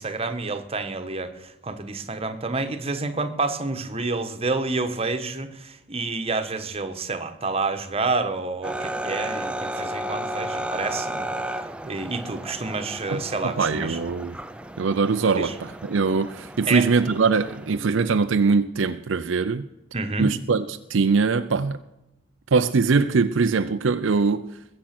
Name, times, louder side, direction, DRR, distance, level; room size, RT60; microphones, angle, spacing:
voice 1, 0.0-11.3 11.8-14.0 15.4-15.5 16.7-16.9 19.9-20.3, right 3 dB, 30° right, 1.2 m, -28 dB
sound 1, 8.6-17.8, right 1 dB, 5° right, 0.5 m, -33 dB
voice 2, 13.1-14.4 14.8-19.6 20.2-21.8 22.5-24.6, right 4 dB, 60° right, 0.5 m, -22 dB
21.0 x 7.5 x 6.0 m
head